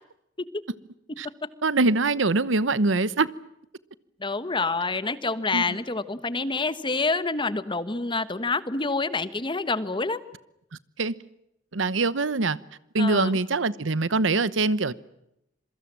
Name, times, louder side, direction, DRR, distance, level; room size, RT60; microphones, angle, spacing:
voice 1, 1.6-3.3 5.5-5.7 11.0-11.1 11.7-12.6 12.9-14.9, right 3 dB, 75° right, 17 dB, 1.0 m, -23 dB
voice 2, 4.2-10.2 13.0-13.4, left 3 dB, 25° left, 13 dB, 1.3 m, -27 dB
27.0 x 23.5 x 7.5 m, 0.81 s
head